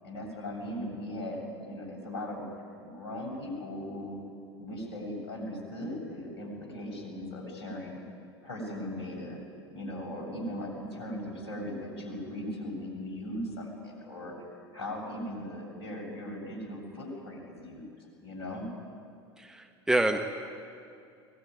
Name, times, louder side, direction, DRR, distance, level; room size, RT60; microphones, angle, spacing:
voice 1, 0.0-4.2 4.6-8.0 8.4-9.4 9.7-18.7, left 1 dB, 65° left, 0 dB, 7.3 m, -38 dB
voice 2, 19.4-20.2, right 1 dB, 5° right, 5 dB, 1.4 m, -27 dB
22.5 x 19.5 x 9.7 m, 2.4 s
figure-of-eight pair, 80°, 14 cm